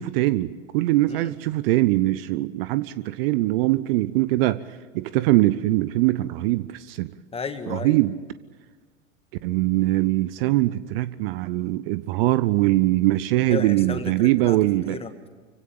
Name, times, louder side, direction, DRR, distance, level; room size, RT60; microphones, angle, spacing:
voice 1, 0.0-4.6 4.9-7.1 7.7-8.2 9.4-15.0, right 17 dB, 45° right, 0.8 m, -22 dB
voice 2, 7.3-8.0 13.5-14.6 14.8-15.3, left 5 dB, 15° left, 1.8 m, -33 dB
25.5 x 16.5 x 8.7 m
figure-of-eight pair, 95°, 39 cm